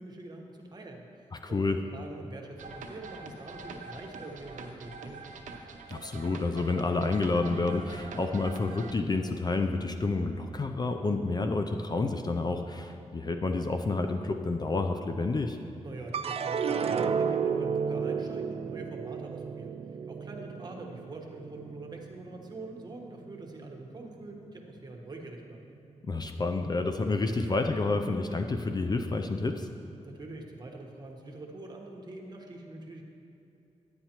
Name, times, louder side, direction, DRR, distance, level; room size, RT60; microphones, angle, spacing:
voice 1, 0.0-5.2 15.8-25.6 30.0-33.1, right 2 dB, 35° right, 1 dB, 1.2 m, -44 dB
voice 2, 1.3-1.8 5.9-15.6 26.0-29.7, left 3 dB, 35° left, 6 dB, 0.4 m, -29 dB
sound 1, 2.6-8.9, right 3 dB, 90° right, 0.7 m, -45 dB
sound 2, 16.1-22.6 23.0-23.7, right 6 dB, 55° right, 0.4 m, -32 dB
10.0 x 9.6 x 2.9 m, 2.8 s
cardioid pair, 90°, 13 cm